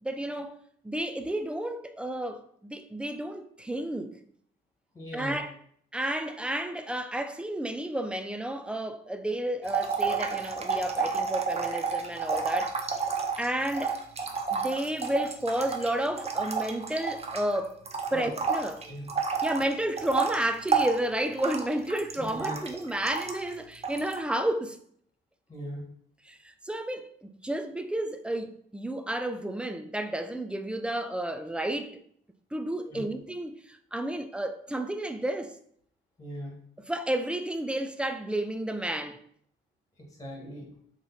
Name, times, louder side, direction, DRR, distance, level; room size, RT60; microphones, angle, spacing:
voice 1, 0.0-0.5 0.8-4.2 5.1-5.5 5.9-12.8 13.4-14.0 14.5-17.8 18.1-18.8 19.4-24.8 26.3-26.4 26.6-32.0 32.5-35.5 36.9-39.2, right 1 dB, 5° right, 0.4 m, -31 dB
voice 2, 4.9-5.4 18.1-18.3 18.8-19.1 22.2-22.6 25.5-25.8 32.9-33.1 36.2-36.6 40.1-40.7, equal, 15° left, 1.7 m, -39 dB
sound 1, 9.7-17.6 17.9-23.5 23.8-24.2, right 5 dB, 30° right, 0.7 m, -30 dB
3.9 x 3.2 x 4.0 m
cardioid pair, 90°, 20 cm